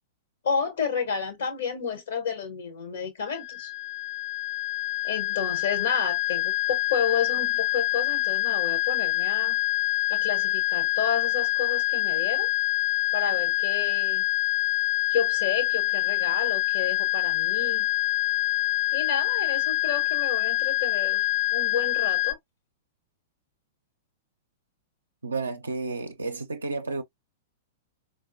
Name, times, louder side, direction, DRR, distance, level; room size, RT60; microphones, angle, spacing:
voice 1, 0.4-3.7 5.0-9.6 10.1-12.5 13.1-14.2 15.1-17.9 18.9-21.2 21.5-22.4, left 6 dB, 70° left, 1.1 m, -31 dB
sound 1, 3.3-22.3, left 17 dB, 35° left, 0.7 m, -26 dB
voice 2, 25.2-27.0, right 3 dB, 80° right, 0.5 m, -31 dB
4.1 x 2.2 x 2.6 m
figure-of-eight pair, 105°, 0 cm